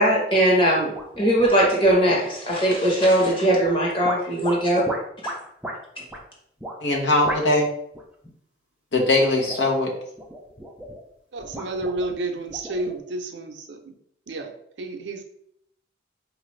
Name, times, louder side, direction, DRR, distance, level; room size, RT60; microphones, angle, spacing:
voice 1, 0.0-4.8 5.2-5.3, right 1 dB, 30° left, -3 dB, 1.1 m, -20 dB
sound 1, 0.9-2.3 3.3-3.7 4.0-5.8 6.1-6.2 6.6-6.8 7.3-7.6 7.9-8.3 9.2-9.8 10.2-11.0 11.4-13.0, right 1 dB, 5° right, 0.4 m, -35 dB
voice 2, 6.8-7.7 8.9-9.9, left 2 dB, 85° left, 0 dB, 0.9 m, -20 dB
voice 3, 11.3-13.9 14.3-14.5 14.8-15.3, right 2 dB, 75° right, 4 dB, 0.5 m, -31 dB
4.5 x 2.4 x 3.1 m, 0.72 s
head